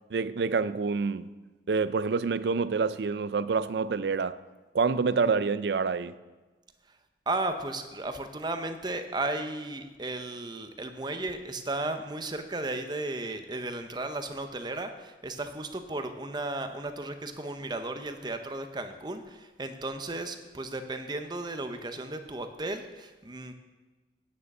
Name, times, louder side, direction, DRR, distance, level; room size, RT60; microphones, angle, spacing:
voice 1, 0.1-1.3 1.7-4.4 4.7-6.1, right 4 dB, 70° right, 0.4 m, -27 dB
voice 2, 7.3-23.5, right 2 dB, 25° right, 0.8 m, -34 dB
9.6 x 6.7 x 7.3 m
head